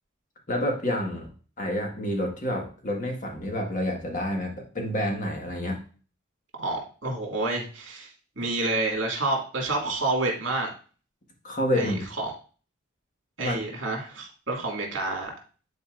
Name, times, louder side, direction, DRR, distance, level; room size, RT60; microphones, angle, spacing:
voice 1, 0.5-1.3 1.6-5.8 11.4-12.0 13.4-13.6, left 1 dB, 40° left, 1 dB, 1.6 m, -28 dB
voice 2, 6.6-8.1 8.4-10.7 11.7-12.3 13.4-15.3, right 2 dB, 65° right, 0 dB, 2.2 m, -29 dB
10.5 x 4.2 x 2.5 m, 0.38 s
head